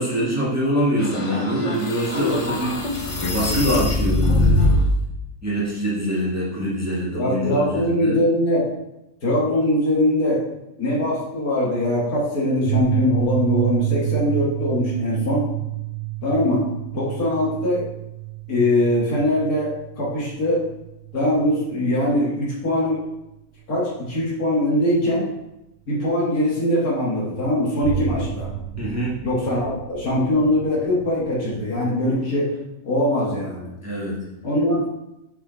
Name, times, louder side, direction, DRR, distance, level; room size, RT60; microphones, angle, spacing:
voice 1, 0.0-4.7 5.4-8.2 28.8-29.2 33.8-34.2, equal, 10° right, -7 dB, 1.4 m, -24 dB
sound 1, 1.0-5.0, left 1 dB, 35° left, 0.5 m, -22 dB
voice 2, 7.1-8.6 9.2-10.4 10.8-15.4 16.2-16.7 16.9-17.8 18.5-20.6 21.1-23.0 23.7-25.3 25.9-28.5 29.2-32.5 32.8-33.7 34.4-34.9, left 1 dB, 85° left, -6 dB, 2.3 m, -22 dB
sound 2, 12.7-22.0 22.9-23.0 27.8-31.7, right 14 dB, 90° right, 1.1 m, -29 dB
5.6 x 4.7 x 3.9 m, 0.91 s
omnidirectional pair, 1.5 m